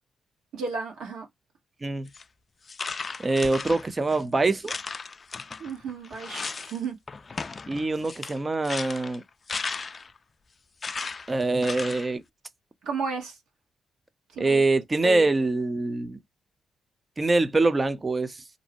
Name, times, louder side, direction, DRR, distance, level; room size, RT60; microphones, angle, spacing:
voice 1, 0.5-1.2 5.6-7.0 12.8-13.4 14.3-14.6 15.0-15.3, right 5 dB, 80° right, 1.0 m, -33 dB
sound 1, 2.1-2.2 2.7-4.2 4.6-6.8 7.1-10.2 10.8-12.1, left 4 dB, 40° left, 0.3 m, -36 dB
voice 2, 3.2-4.7 7.7-9.2 11.3-12.2 14.4-16.2 17.2-18.4, right 2 dB, 30° right, 0.5 m, -24 dB
2.6 x 2.0 x 2.7 m
supercardioid pair, 55°, 0 cm